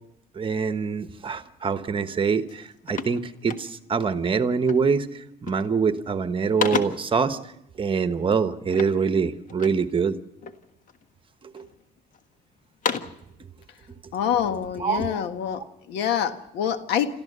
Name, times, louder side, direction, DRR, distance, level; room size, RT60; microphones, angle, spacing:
voice 1, 0.3-7.4 7.8-10.2 11.4-11.7 14.8-15.2, right 5 dB, 30° right, 10 dB, 1.2 m, -25 dB
sound 1, 2.0-2.2 2.5-4.0 4.7-5.0 5.3-5.8 6.2-7.2 8.7-9.9 10.4-11.0 11.6-12.2 12.6-13.3, left 6 dB, 50° left, 1.5 m, -33 dB
voice 2, 14.1-15.6 15.9-17.1, left 9 dB, 85° left, 8 dB, 1.7 m, -26 dB
28.0 x 14.0 x 6.8 m, 0.83 s
cardioid pair, 110°, 17 cm